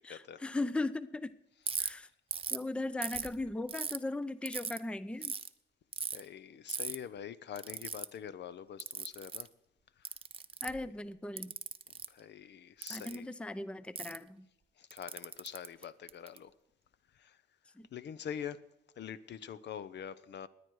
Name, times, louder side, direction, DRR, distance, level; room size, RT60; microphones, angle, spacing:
voice 1, 0.0-1.3 1.8-2.1 2.5-5.3 10.6-11.5 12.9-14.4 17.8-17.9, left 2 dB, 5° left, 15 dB, 0.5 m, -38 dB
Ratchet pawl, 1.7-1.9 2.3-2.6 3.0-4.0 4.5-4.8 5.2-5.5 5.9-6.2 6.7-7.0 7.6-8.1 8.8-9.5 10.1-10.8 11.4-12.1 12.8-13.2 14.0-14.2 14.9-16.4, right 5 dB, 30° right, 0.8 m, -38 dB
voice 2, 6.1-9.5 12.1-13.3 14.8-16.5 17.2-17.4 17.9-18.6 19.0-20.5, left 8 dB, 60° left, 15 dB, 0.7 m, -44 dB
19.5 x 9.3 x 4.8 m, 0.85 s
cardioid pair, 90°, 20 cm